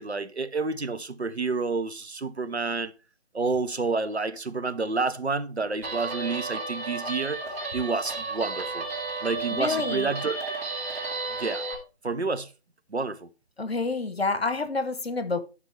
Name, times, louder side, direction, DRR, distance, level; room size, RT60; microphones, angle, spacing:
voice 1, 0.0-2.9 3.3-7.4 7.7-8.9 9.2-10.5 11.4-11.7 12.0-12.5 12.9-13.3, right 4 dB, 85° right, 1.0 m, -29 dB
Guitar, 5.8-11.7, right 3 dB, 15° right, 1.6 m, -33 dB
voice 2, 9.5-10.1 13.6-15.4, left 3 dB, 70° left, 1.3 m, -28 dB
11.0 x 5.4 x 4.4 m
figure-of-eight pair, 155°, 32 cm